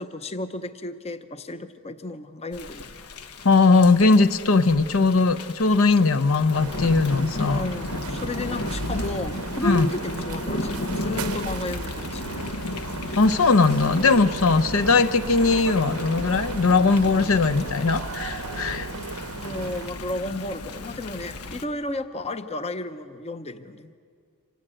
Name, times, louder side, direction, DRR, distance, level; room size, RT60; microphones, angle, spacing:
voice 1, 0.0-2.9 7.3-12.3 19.4-24.0, left 1 dB, 30° left, 10 dB, 0.7 m, -33 dB
Thunder / Rain, 2.5-21.7, left 2 dB, 85° left, 1.2 m, -34 dB
voice 2, 3.4-7.7 9.6-9.9 13.2-18.9, left 3 dB, 65° left, 11 dB, 0.7 m, -19 dB
sound 1, 6.5-19.9, right 4 dB, 80° right, 0.8 m, -36 dB
26.0 x 17.5 x 8.9 m, 2.2 s
head